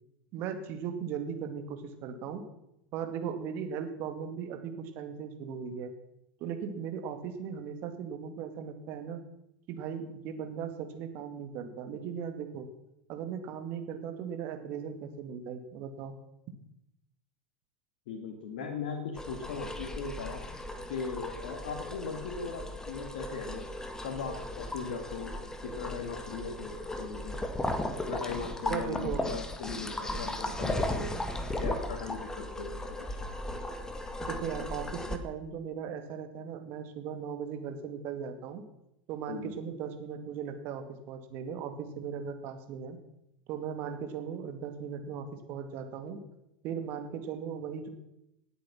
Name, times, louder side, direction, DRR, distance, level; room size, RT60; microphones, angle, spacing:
voice 1, 0.3-2.4 2.9-5.9 6.4-9.2 9.7-12.7 13.1-16.1 28.7-29.2 34.2-38.6 39.1-43.0 43.5-46.2 46.6-47.9, right 7 dB, 50° right, 7 dB, 2.4 m, -38 dB
voice 2, 18.1-20.4 20.9-23.6 24.0-27.4 28.0-31.1 31.6-33.2 39.3-39.6, left 5 dB, 65° left, 3 dB, 2.0 m, -39 dB
sound 1, 19.2-35.2, left 1 dB, 10° left, 1.8 m, -36 dB
18.5 x 8.3 x 6.1 m, 0.83 s
hypercardioid pair, 90°, 5 cm